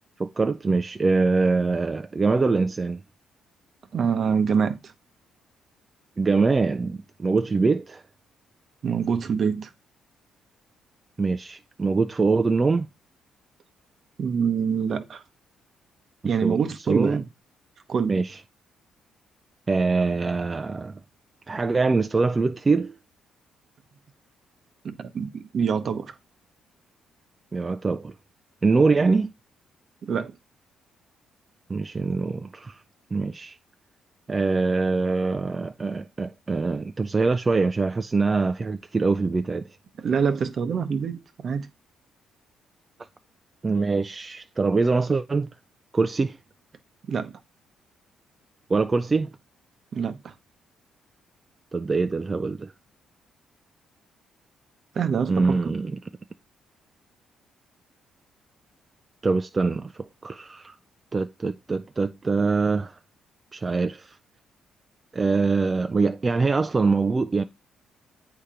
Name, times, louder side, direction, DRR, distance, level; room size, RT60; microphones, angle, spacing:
voice 1, 0.2-3.0 6.2-8.0 11.2-12.9 16.2-16.6 16.9-17.2 18.1-18.4 19.7-21.0 21.5-22.9 27.5-28.1 28.6-29.3 31.7-32.8 33.1-33.6 34.3-39.6 43.6-45.5 45.9-46.4 48.7-49.3 51.7-52.7 55.3-56.0 59.2-59.9 60.2-60.8 61.1-63.0 63.5-64.2 65.1-67.4, right 4 dB, 30° right, 0.3 m, -23 dB
voice 2, 3.9-4.9 8.8-9.7 14.2-15.2 16.2-17.2 17.9-18.2 24.8-26.2 30.0-30.3 40.0-41.7 47.1-47.3 49.9-50.3 54.9-55.6, right 6 dB, 50° right, 0.8 m, -25 dB
8.0 x 2.8 x 5.0 m
cardioid pair, 90°, 0 cm